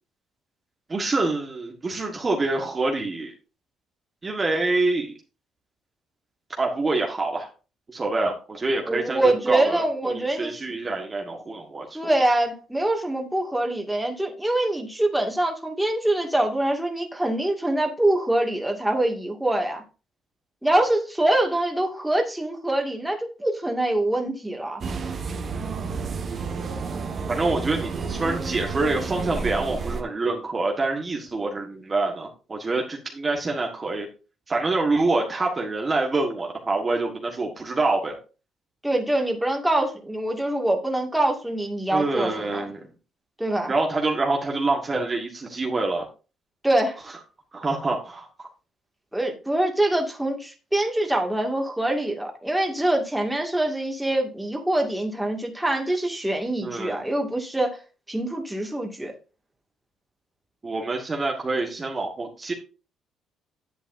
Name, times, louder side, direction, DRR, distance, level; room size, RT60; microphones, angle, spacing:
voice 1, 0.9-3.3 4.2-5.1 6.6-7.5 7.9-12.0 27.3-34.1 34.5-38.2 41.9-42.8 43.7-46.1 47.5-48.5 56.6-57.0 60.6-62.5, right 3 dB, 30° right, 1 dB, 1.6 m, -26 dB
voice 2, 8.9-10.6 11.9-19.8 20.6-24.8 38.8-42.7 43.4-43.7 46.6-47.0 49.1-57.8 58.1-59.1, right 1 dB, 5° right, 2 dB, 2.2 m, -24 dB
sound 1, 24.8-30.0, right 5 dB, 45° right, 1.6 m, -30 dB
10.5 x 8.0 x 2.7 m, 0.33 s
cardioid pair, 95°, 0 cm